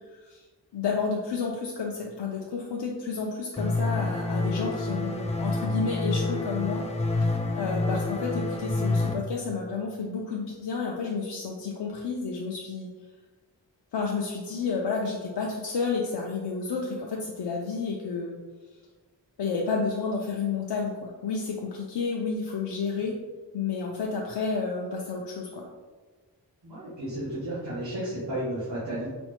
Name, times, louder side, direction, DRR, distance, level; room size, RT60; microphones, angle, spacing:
voice 1, 0.7-6.8 7.5-12.9 13.9-18.4 19.4-23.2 23.5-25.7, left 4 dB, 70° left, -1 dB, 0.5 m, -31 dB
sound 1, 3.6-9.1, left 2 dB, 15° left, 0.3 m, -28 dB
voice 2, 26.6-29.1, right 1 dB, 80° right, -10 dB, 1.2 m, -33 dB
4.3 x 2.1 x 2.9 m, 1.3 s
wide cardioid pair, 55°, 42 cm